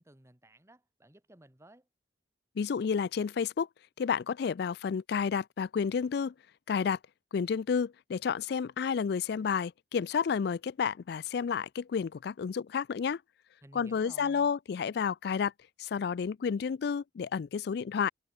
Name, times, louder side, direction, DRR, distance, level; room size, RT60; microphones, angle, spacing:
voice 1, 0.0-1.9 13.6-14.5, right 1 dB, 15° right, 1.5 m, -56 dB
voice 2, 2.6-3.7 4.0-6.3 6.7-7.0 7.3-13.2 13.7-15.5 15.8-18.1, left 6 dB, 60° left, 0.3 m, -31 dB
head